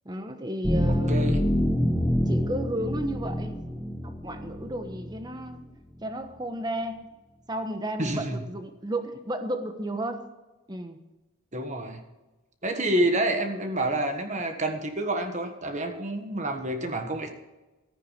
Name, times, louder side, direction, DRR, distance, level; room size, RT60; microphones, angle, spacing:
voice 1, 0.0-1.4 2.3-3.6 4.0-5.6 6.0-7.0 7.5-10.3 10.7-11.0, right 1 dB, 20° right, 7 dB, 1.1 m, -33 dB
sound 1, 0.6-5.4, equal, 5° left, 0.9 m, -26 dB
voice 2, 0.9-1.4 8.0-8.4 11.5-12.0 12.6-17.3, right 1 dB, 35° right, 6 dB, 1.5 m, -28 dB
14.5 x 9.6 x 5.1 m, 1.1 s
head